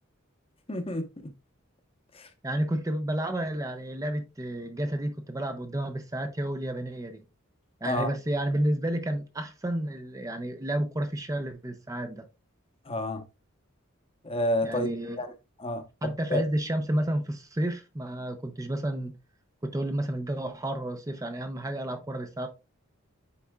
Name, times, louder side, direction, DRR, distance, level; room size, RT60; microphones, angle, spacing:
voice 1, 0.7-1.3 2.1-2.3 7.8-8.1 12.9-13.2 14.2-14.9 15.2-15.3 15.6-16.4, left 1 dB, 30° left, 0.9 m, -30 dB
voice 2, 2.4-7.2 7.8-12.2 14.6-15.2 16.0-19.1 19.6-22.5, right 1 dB, 15° right, 0.6 m, -31 dB
9.7 x 4.2 x 2.3 m
head